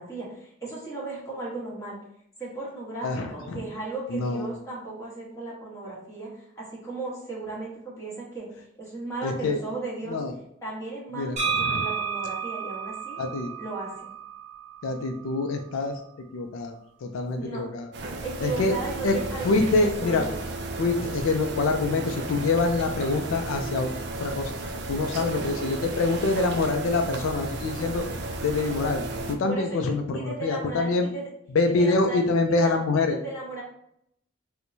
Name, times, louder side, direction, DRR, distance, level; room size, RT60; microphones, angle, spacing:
voice 1, 0.0-2.0 2.4-10.2 10.6-13.2 13.6-14.1 17.4-17.6 18.2-19.8 20.0-20.4 25.2-25.6 29.5-31.3 31.7-32.2 32.6-33.6, right 3 dB, 15° left, -6 dB, 1.1 m, -36 dB
voice 2, 3.0-3.7 4.1-4.5 9.2-9.6 10.1-10.3 11.1-11.8 13.2-13.5 14.8-16.0 16.3-17.9 18.4-18.7 19.0-19.2 19.4-20.3 20.8-23.9 24.2-24.5 24.9-28.0 28.4-29.0 29.3-31.1 31.5-33.2, left 3 dB, 85° left, 5 dB, 0.4 m, -25 dB
sound 1, 11.4-15.1, right 6 dB, 35° right, 1.1 m, -31 dB
sound 2, 17.9-29.3, right 2 dB, 55° right, 0.4 m, -34 dB
4.3 x 2.1 x 2.6 m, 0.74 s
head